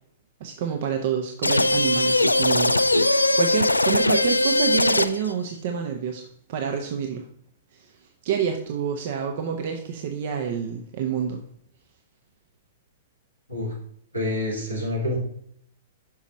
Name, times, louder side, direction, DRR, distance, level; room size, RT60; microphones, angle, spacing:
voice 1, 0.4-7.3 7.7-11.4, right 7 dB, 50° right, 4 dB, 0.7 m, -28 dB
sound 1, 1.4-5.3, left 2 dB, 85° left, 0.3 m, -20 dB
voice 2, 14.1-15.2, left 1 dB, 85° right, -4 dB, 3.0 m, -27 dB
6.2 x 5.7 x 4.1 m, 0.68 s
figure-of-eight pair, 105°, 0 cm